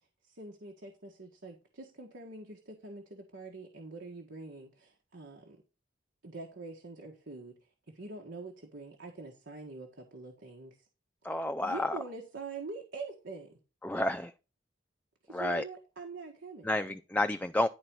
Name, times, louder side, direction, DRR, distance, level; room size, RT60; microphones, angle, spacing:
voice 1, 0.0-5.6 6.2-7.5 7.9-10.9 11.2-13.6 15.2-17.0, right 3 dB, 75° right, 1.6 m, -45 dB
voice 2, 11.2-12.0 13.8-14.3 15.3-15.6 16.6-17.7, left 1 dB, 10° left, 0.4 m, -30 dB
11.0 x 4.2 x 6.1 m
head